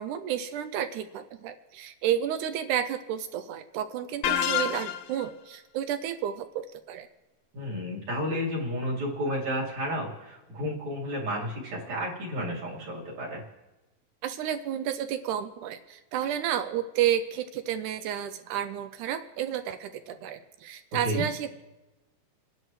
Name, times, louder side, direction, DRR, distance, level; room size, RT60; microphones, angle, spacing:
voice 1, 0.0-7.1 14.2-21.5, right 10 dB, 80° right, 9 dB, 1.9 m, -31 dB
sound 1, 4.2-5.3, left 9 dB, 90° left, 2.5 m, -27 dB
voice 2, 7.5-13.4 21.0-21.2, equal, 55° right, -5 dB, 3.5 m, -31 dB
29.0 x 10.5 x 3.2 m, 1.1 s
omnidirectional pair, 3.9 m